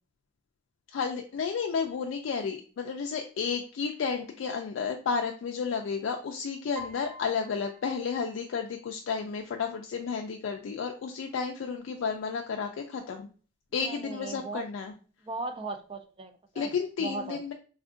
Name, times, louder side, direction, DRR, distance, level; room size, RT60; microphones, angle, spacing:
voice 1, 0.9-13.3 13.7-14.9 16.6-17.5, left 5 dB, 75° left, 3 dB, 0.3 m, -32 dB
Piano, 6.8-8.8, equal, 10° left, 0.7 m, -47 dB
voice 2, 13.8-14.6 15.3-16.7 17.0-17.4, right 3 dB, 30° right, 7 dB, 0.4 m, -37 dB
3.5 x 2.4 x 2.4 m, 0.39 s
head